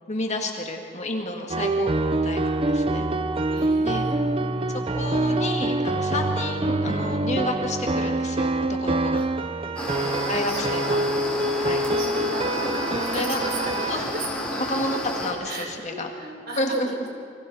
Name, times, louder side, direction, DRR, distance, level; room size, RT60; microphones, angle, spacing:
voice 1, 0.1-3.1 3.8-4.0 4.7-9.2 10.3-11.0 11.6-11.8 13.1-13.4 13.9-14.0 14.7-16.1 16.6-17.1, left 1 dB, 35° left, 2 dB, 2.0 m, -30 dB
sound 1, 1.5-14.0, right 2 dB, 30° right, 0.7 m, -25 dB
voice 2, 3.5-4.9 9.1-9.3 10.0-11.1 11.3-14.2 14.5-14.8 15.4-16.8, right 2 dB, 55° right, 1 dB, 4.0 m, -38 dB
sound 2, 9.8-15.3, left 1 dB, 5° left, 3.7 m, -30 dB
28.5 x 24.0 x 4.2 m, 2.3 s
head